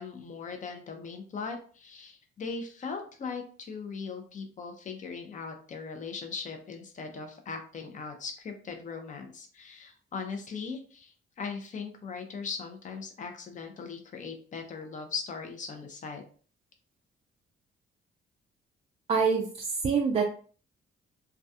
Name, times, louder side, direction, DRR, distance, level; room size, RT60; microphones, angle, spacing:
voice 1, 0.0-16.2, left 5 dB, 40° left, 4 dB, 0.6 m, -39 dB
voice 2, 19.1-20.2, right 5 dB, 30° right, 1 dB, 0.4 m, -26 dB
2.3 x 2.3 x 2.7 m, 0.42 s
cardioid pair, 90°, 20 cm